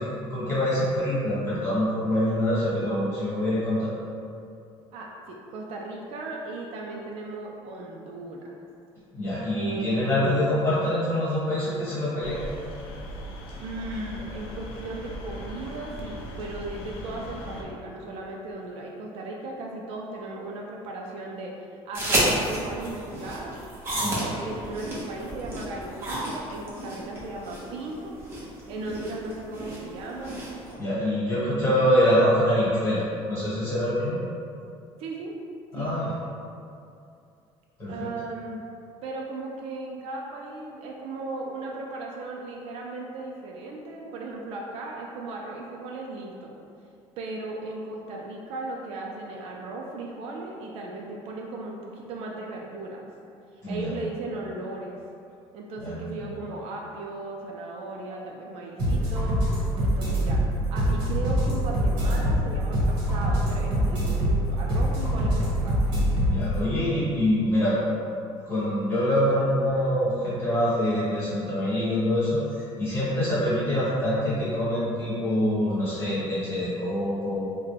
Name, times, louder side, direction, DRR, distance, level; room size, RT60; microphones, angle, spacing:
voice 1, 0.0-3.9 9.1-12.4 24.0-24.2 30.8-34.2 35.7-36.1 37.8-38.1 53.6-53.9 55.8-56.3 66.2-67.8 68.5-77.5, left 1 dB, 20° left, -11 dB, 1.4 m, -25 dB
voice 2, 4.9-8.6 9.5-10.4 13.6-21.5 21.9-23.6 23.8-28.2 28.7-30.4 31.4-31.5 31.8-32.0 35.0-35.3 35.7-35.9 37.9-38.6 39.0-46.5 47.2-53.1 53.7-55.0 55.5-59.4 59.8-60.4 60.7-65.8, right 2 dB, 60° right, -1 dB, 0.4 m, -36 dB
sound 1, 12.2-17.6, equal, 55° left, 0.5 m, -39 dB
sound 2, 21.9-30.7, right 1 dB, 20° right, 0.7 m, -31 dB
sound 3, 58.8-66.5, equal, 40° right, 1.3 m, -24 dB
3.6 x 2.1 x 3.3 m, 2.5 s
cardioid pair, 180°, 11 cm